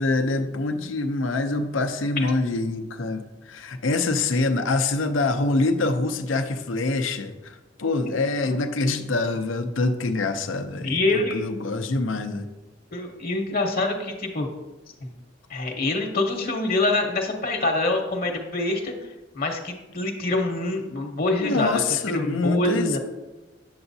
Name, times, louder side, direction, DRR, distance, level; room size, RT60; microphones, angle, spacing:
voice 1, 0.0-12.5 21.4-23.0, left 3 dB, 85° left, 7 dB, 0.6 m, -25 dB
voice 2, 10.8-11.4 12.9-14.5 15.0-15.1 15.5-18.9 19.3-21.8 22.1-23.0, left 2 dB, 50° left, 3 dB, 1.0 m, -25 dB
8.7 x 6.9 x 2.7 m, 1.1 s
head